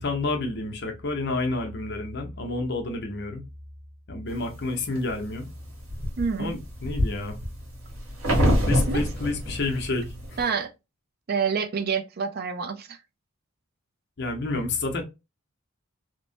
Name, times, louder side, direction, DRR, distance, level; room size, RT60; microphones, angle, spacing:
voice 1, 0.0-3.4 4.1-5.5 6.4-7.4 8.6-10.4 14.2-15.0, left 2 dB, 50° left, 0.8 m, -29 dB
sound 1, 4.4-5.1 5.6-10.4, equal, 80° right, 1.4 m, -26 dB
voice 2, 6.2-6.6 8.7-9.0 10.4-10.7 11.3-13.0, right 6 dB, 45° right, 0.4 m, -28 dB
2.9 x 2.1 x 2.7 m
head